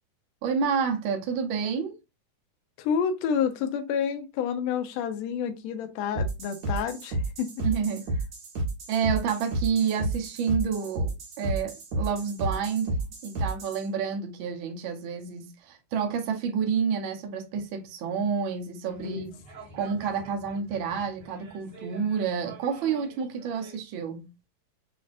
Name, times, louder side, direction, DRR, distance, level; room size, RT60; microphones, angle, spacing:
voice 1, 0.4-2.0 7.6-8.1 8.9-13.0 13.2-19.2 19.7-24.3, right 6 dB, 85° right, 1.1 m, -29 dB
voice 2, 2.8-7.7 19.0-19.4, left 7 dB, 70° left, 1.7 m, -29 dB
sound 1, 6.1-13.8, right 1 dB, 65° right, 2.8 m, -31 dB
sound 2, 18.8-23.8, right 4 dB, 45° right, 1.6 m, -47 dB
7.1 x 2.5 x 2.5 m
omnidirectional pair, 3.6 m